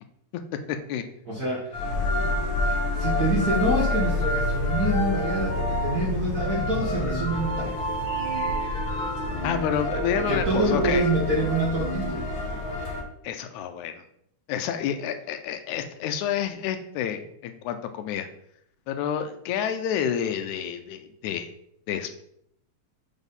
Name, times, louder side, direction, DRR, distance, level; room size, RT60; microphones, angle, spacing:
voice 1, 0.7-1.0 9.4-11.1 13.2-14.0 14.5-18.3 18.9-21.5 21.9-22.1, left 9 dB, 80° left, 8 dB, 2.0 m, -29 dB
voice 2, 1.3-7.9 10.1-12.3, right 2 dB, 50° right, -4 dB, 1.2 m, -27 dB
sound 1, 1.7-13.0, left 1 dB, 60° left, 1.3 m, -27 dB
5.3 x 4.0 x 5.3 m, 0.70 s
omnidirectional pair, 3.4 m